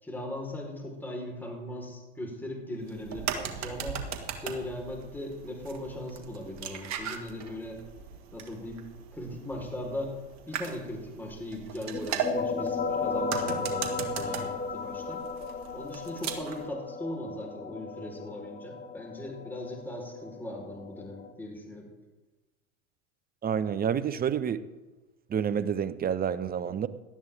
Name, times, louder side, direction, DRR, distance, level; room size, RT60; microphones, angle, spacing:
voice 1, 0.0-4.0 4.3-7.8 8.3-8.8 9.1-10.2 10.5-15.2 15.7-21.9, left 1 dB, 5° left, 0 dB, 4.3 m, -39 dB
sound 1, 2.8-16.7, right 7 dB, 45° right, 1.9 m, -39 dB
sound 2, 11.9-21.3, left 4 dB, 25° left, 1.8 m, -35 dB
voice 2, 23.4-24.6 25.3-26.9, right 8 dB, 25° right, 15 dB, 0.8 m, -28 dB
17.5 x 12.5 x 3.6 m, 1.1 s
hypercardioid pair, 85°, 36 cm